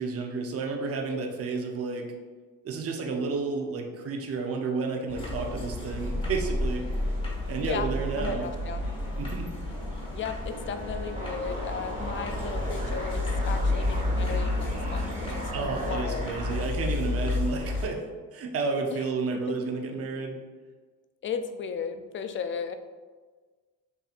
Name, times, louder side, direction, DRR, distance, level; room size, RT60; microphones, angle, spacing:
voice 1, 0.0-2.1 2.6-6.9 7.5-8.5 9.2-9.5 15.5-18.0 18.3-20.4, right 4 dB, 40° right, 2 dB, 0.7 m, -31 dB
sound 1, 5.1-17.9, left 1 dB, 15° left, 1.5 m, -31 dB
voice 2, 8.2-8.8 10.1-16.3 18.9-19.1 19.5-19.6 21.2-22.7, left 6 dB, 35° left, 8 dB, 0.4 m, -35 dB
sound 2, 10.5-16.6, right 1 dB, 20° right, 1.4 m, -38 dB
6.8 x 2.7 x 2.5 m, 1.4 s
cardioid pair, 105°, 35 cm